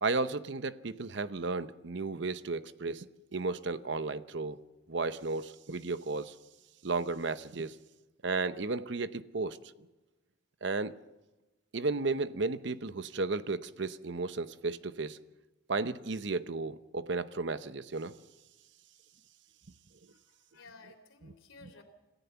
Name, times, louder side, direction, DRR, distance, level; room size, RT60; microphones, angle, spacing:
voice 1, 0.0-3.1 3.3-4.6 4.9-6.3 6.8-7.7 8.2-9.6 10.6-10.9 11.7-15.2 15.7-18.2, right 3 dB, 65° right, 13 dB, 0.8 m, -34 dB
voice 2, 20.1-21.8, left 3 dB, 85° left, 7 dB, 3.3 m, -55 dB
27.0 x 14.5 x 7.0 m, 1.1 s
head